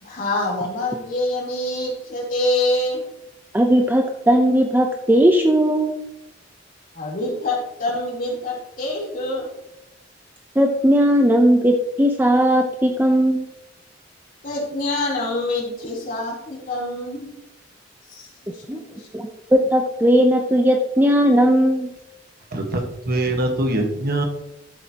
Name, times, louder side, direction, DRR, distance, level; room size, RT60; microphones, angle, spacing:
voice 1, 0.0-3.0 6.9-9.5 14.4-17.3 18.1-19.1, left 2 dB, 45° left, -3 dB, 3.5 m, -26 dB
voice 2, 3.5-5.9 10.6-13.5 18.7-18.8 19.1-21.9, equal, 10° right, 3 dB, 0.7 m, -17 dB
voice 3, 22.5-24.2, right 1 dB, 55° right, 3 dB, 1.5 m, -23 dB
12.0 x 7.8 x 3.0 m, 0.86 s
head